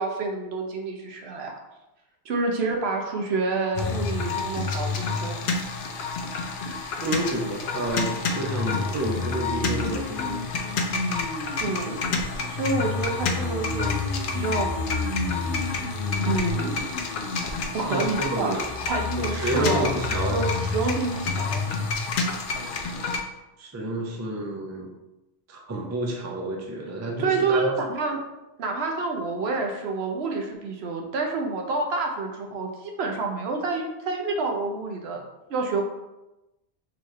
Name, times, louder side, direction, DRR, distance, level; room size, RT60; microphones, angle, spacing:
voice 1, 0.0-1.5 2.2-5.5 11.6-12.0 12.5-13.9 14.3-14.7 16.2-16.8 17.7-20.0 20.3-21.7 27.2-28.2 28.6-35.2 35.5-35.8, right 3 dB, 80° right, 2 dB, 0.9 m, -28 dB
sound 1, 3.8-23.2, left 4 dB, 60° left, 0.7 m, -28 dB
voice 2, 7.0-10.5 17.9-18.7 19.2-20.5 23.6-24.9 25.5-27.7, right 1 dB, 25° right, 0 dB, 0.4 m, -29 dB
3.8 x 3.0 x 3.1 m, 0.98 s
omnidirectional pair, 1.1 m